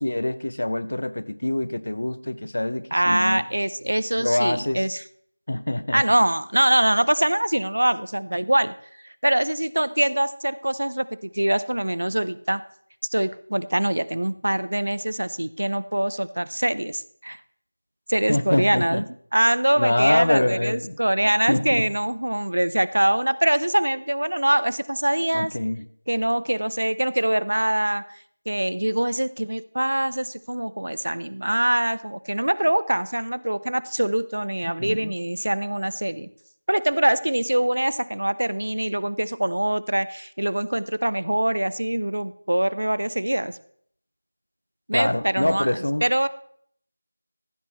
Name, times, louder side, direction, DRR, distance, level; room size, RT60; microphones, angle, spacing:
voice 1, 0.0-3.4 4.2-4.8 5.5-6.0 18.3-19.0 19.8-21.0 21.5-21.8 25.3-25.9 34.8-35.1 44.9-46.0, left 1 dB, 50° left, 14 dB, 0.7 m, -24 dB
voice 2, 2.9-5.0 5.9-8.7 9.0-12.6 13.1-17.4 18.1-19.0 19.3-25.5 26.1-36.3 36.7-43.6 44.9-46.3, right 1 dB, 85° right, 17 dB, 0.5 m, -24 dB
14.5 x 6.1 x 4.4 m, 0.63 s
figure-of-eight pair, 180°, 0 cm